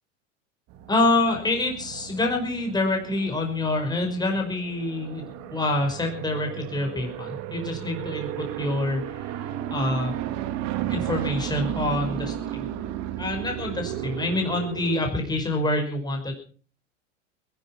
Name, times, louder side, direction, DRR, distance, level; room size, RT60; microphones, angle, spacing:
sound 1, 0.7-15.1, right 12 dB, 45° right, 2.0 m, -34 dB
voice 1, 0.9-10.1 10.9-12.7 13.2-16.3, left 2 dB, 10° left, 2 dB, 5.4 m, -26 dB
21.0 x 11.0 x 5.8 m, 0.43 s
hypercardioid pair, 110°, 36 cm